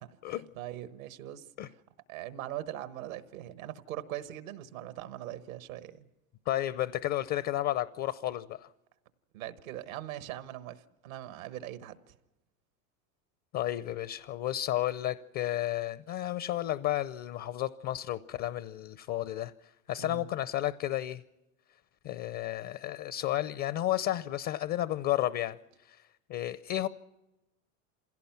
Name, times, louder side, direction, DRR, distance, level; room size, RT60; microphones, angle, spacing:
voice 1, 0.2-1.7 2.1-6.1 9.3-12.1 20.0-20.3, right 13 dB, 85° right, 1.3 m, -41 dB
voice 2, 6.5-8.7 13.5-19.5 19.9-21.2 22.0-25.6 25.9-26.0 26.3-26.9, left 13 dB, 50° left, 0.7 m, -32 dB
26.5 x 17.0 x 5.9 m
supercardioid pair, 100°, 40 cm